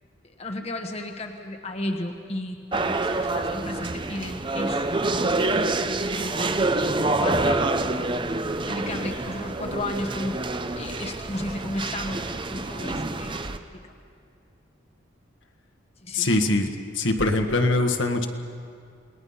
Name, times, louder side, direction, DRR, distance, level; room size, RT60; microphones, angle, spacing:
voice 1, 0.4-4.8 6.4-6.6 6.9-7.6 8.7-10.4 10.8-13.8 16.0-16.3, left 1 dB, 30° left, 4 dB, 1.1 m, -33 dB
sound 1, 2.7-13.6, right 2 dB, 25° right, 0.7 m, -27 dB
voice 2, 16.1-16.7 16.9-18.3, left 2 dB, 70° left, 4 dB, 1.5 m, -22 dB
28.5 x 19.5 x 5.7 m, 2.3 s
head